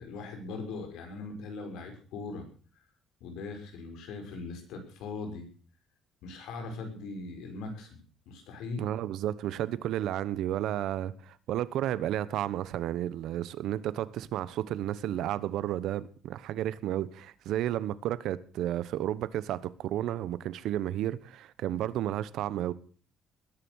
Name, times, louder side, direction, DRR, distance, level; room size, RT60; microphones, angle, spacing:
voice 1, 0.0-2.5 3.2-5.5 6.2-8.8, left 3 dB, 85° left, 6.4 m, -40 dB
voice 2, 8.8-22.7, right 12 dB, 70° right, 1.1 m, -32 dB
20.5 x 11.0 x 6.5 m
cardioid pair, 155°, 0 cm